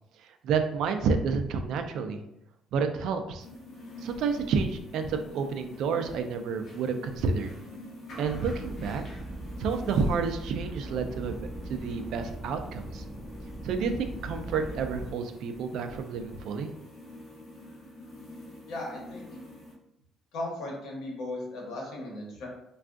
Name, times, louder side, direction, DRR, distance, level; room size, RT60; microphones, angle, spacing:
voice 1, 0.4-2.2 2.7-3.5 4.0-7.5 8.2-9.0 9.6-13.0 13.6-16.7, right 5 dB, 70° right, 7 dB, 0.3 m, -30 dB
sound 1, 3.4-19.7, left 1 dB, 45° left, 0.9 m, -46 dB
sound 2, 8.2-15.1, right 1 dB, ahead, 1.3 m, -40 dB
voice 2, 18.7-19.3 20.3-22.5, left 1 dB, 70° left, -2 dB, 1.0 m, -36 dB
3.4 x 2.3 x 2.5 m, 0.81 s
cardioid pair, 155°, 0 cm